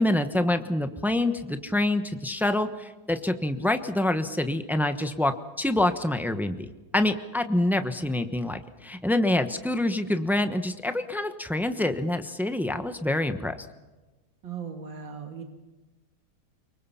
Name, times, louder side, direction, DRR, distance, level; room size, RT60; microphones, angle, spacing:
voice 1, 0.0-13.6, left 1 dB, ahead, 8 dB, 0.6 m, -26 dB
voice 2, 14.4-15.4, right 6 dB, 75° right, 3 dB, 2.7 m, -37 dB
25.5 x 23.5 x 5.7 m, 1.2 s
omnidirectional pair, 2.1 m